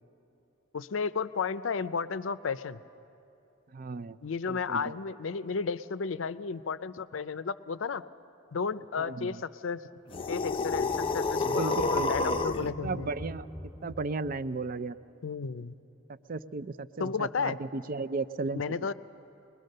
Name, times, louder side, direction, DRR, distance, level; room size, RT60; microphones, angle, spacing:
voice 1, 0.7-2.8 4.2-8.0 8.5-9.4 9.6-9.8 10.3-13.1 15.2-15.7 17.0-17.6 18.5-18.9, left 5 dB, 80° left, 14 dB, 0.5 m, -33 dB
voice 2, 3.7-4.2 4.5-5.0 9.0-9.4 11.4-12.4 12.8-13.5 13.8-15.0 16.1-18.6, right 3 dB, 45° right, 15 dB, 0.4 m, -35 dB
sound 1, 10.1-12.7, left 3 dB, 25° left, 0.5 m, -29 dB
sound 2, 10.7-15.0, equal, 15° right, 1.3 m, -44 dB
22.5 x 21.0 x 6.6 m, 2.9 s
head